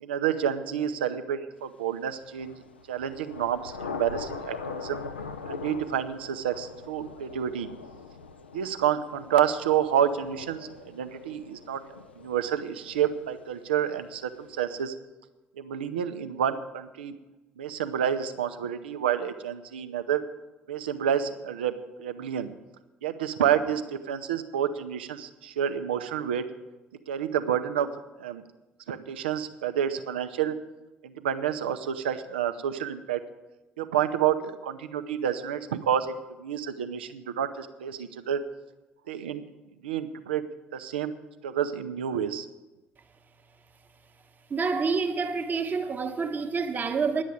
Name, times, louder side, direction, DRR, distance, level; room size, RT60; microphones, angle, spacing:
voice 1, 0.0-2.6 2.9-5.0 5.5-7.7 8.5-11.8 12.2-14.9 15.6-17.1 17.6-20.2 20.7-22.5 23.0-26.4 27.1-27.9 28.2-28.4 28.9-30.5 31.0-33.2 33.8-36.1 36.4-38.4 39.1-39.4 39.8-40.4 40.7-41.1 41.4-42.5, right 9 dB, 75° right, 0.6 m, -29 dB
Thunder / Rain, 2.2-13.8, left 5 dB, 80° left, 0.5 m, -41 dB
voice 2, 44.5-47.2, right 5 dB, 30° right, 1.1 m, -28 dB
10.0 x 7.3 x 9.4 m
figure-of-eight pair, 50°, 6 cm